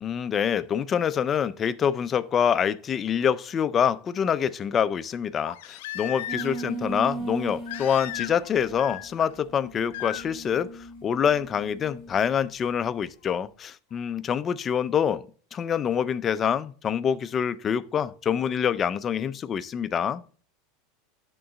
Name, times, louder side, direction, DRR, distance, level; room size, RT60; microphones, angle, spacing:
voice 1, 0.0-15.2 15.5-20.2, left 8 dB, 25° left, 0.3 m, -26 dB
Crying sobbing, 5.4-6.7 7.7-8.5 8.8-9.3 9.9-10.2 11.9-12.0, left 14 dB, 75° left, 0.7 m, -36 dB
sound 1, 6.3-12.3, right 3 dB, 25° right, 1.4 m, -38 dB
10.0 x 3.8 x 3.9 m
supercardioid pair, 150°, 0 cm